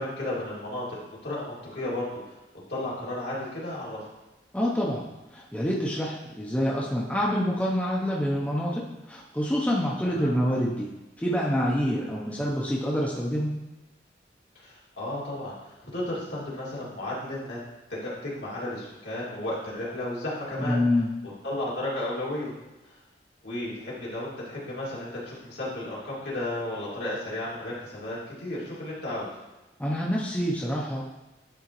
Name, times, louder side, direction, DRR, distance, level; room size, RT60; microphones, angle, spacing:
voice 1, 0.0-2.3 2.7-4.0 10.2-10.3 14.6-17.6 17.9-20.8 21.4-22.5 23.4-29.3, left 1 dB, 60° left, -7 dB, 2.2 m, -33 dB
voice 2, 4.5-5.0 5.3-10.9 11.2-13.5 20.6-21.1 29.8-31.1, equal, 10° left, -4 dB, 0.6 m, -27 dB
10.5 x 3.7 x 3.0 m, 1.0 s
head